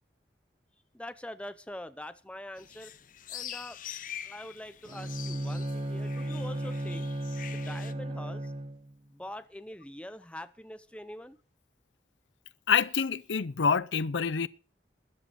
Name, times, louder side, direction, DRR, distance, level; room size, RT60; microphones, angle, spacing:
voice 1, 0.9-2.9 3.3-3.8 4.2-7.1 7.5-8.5 9.1-11.4, left 1 dB, 5° left, 0.7 m, -44 dB
sound 1, 2.6-7.9, left 10 dB, 45° left, 0.8 m, -44 dB
Bowed string instrument, 4.8-8.9, right 1 dB, 30° right, 1.0 m, -35 dB
voice 2, 12.7-14.5, left 6 dB, 85° left, 0.6 m, -27 dB
14.0 x 10.5 x 6.2 m
head